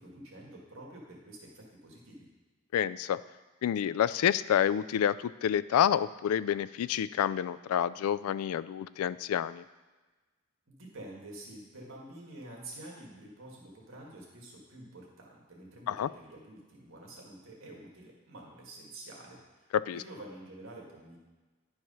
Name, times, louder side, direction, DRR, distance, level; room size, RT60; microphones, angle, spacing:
voice 1, 0.0-2.3 10.7-21.2, right 1 dB, 65° right, -2 dB, 1.9 m, -48 dB
voice 2, 2.7-3.2 3.6-9.6 15.9-16.1 19.7-20.0, left 9 dB, 85° left, 17 dB, 0.3 m, -28 dB
10.5 x 4.8 x 5.5 m, 1.2 s
head